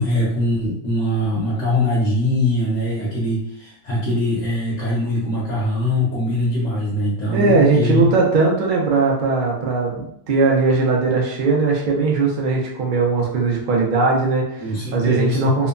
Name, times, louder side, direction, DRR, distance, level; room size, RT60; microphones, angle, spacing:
voice 1, 0.0-8.1 14.6-15.5, left 1 dB, 60° left, -5 dB, 1.0 m, -22 dB
voice 2, 7.3-14.6 14.9-15.7, right 4 dB, 80° right, -1 dB, 0.4 m, -19 dB
2.9 x 2.1 x 2.4 m, 0.73 s
omnidirectional pair, 1.5 m